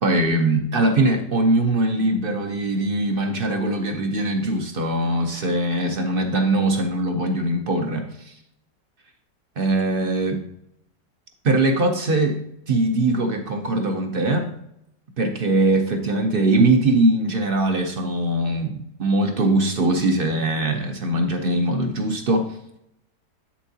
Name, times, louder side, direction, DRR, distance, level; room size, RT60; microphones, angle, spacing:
voice 1, 0.0-8.4 9.6-10.4 11.4-12.4 12.7-14.5 15.2-22.6, right 2 dB, 55° right, 5 dB, 0.6 m, -21 dB
8.1 x 7.2 x 2.8 m, 0.77 s
omnidirectional pair, 1.9 m